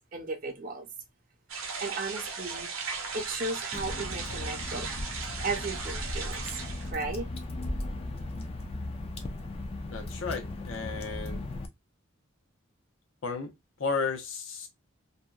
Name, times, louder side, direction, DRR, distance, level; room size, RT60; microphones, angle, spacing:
voice 1, 0.1-0.9 1.8-2.7 3.1-4.9 5.4-6.6 6.9-7.3, right 3 dB, 40° right, 0.4 m, -35 dB
sound 1, 1.5-6.9, right 5 dB, 80° right, 0.7 m, -37 dB
Water / Drip, 3.7-11.7, left 2 dB, 30° left, 0.3 m, -37 dB
voice 2, 9.9-11.5 13.2-13.5 13.8-14.7, left 4 dB, 70° left, 0.6 m, -33 dB
2.7 x 2.1 x 2.2 m
head